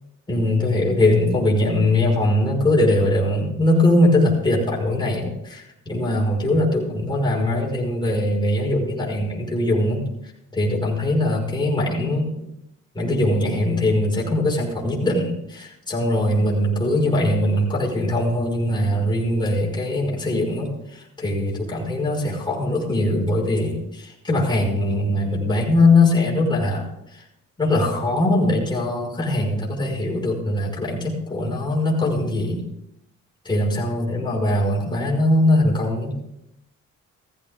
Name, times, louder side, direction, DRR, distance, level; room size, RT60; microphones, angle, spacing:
voice 1, 0.3-10.0 10.5-12.5 12.9-26.9 27.1-27.2 27.6-32.6 33.5-36.1, left 1 dB, 15° left, -3 dB, 5.4 m, -21 dB
15.5 x 15.0 x 3.7 m, 0.82 s
cardioid pair, 90°, 30 cm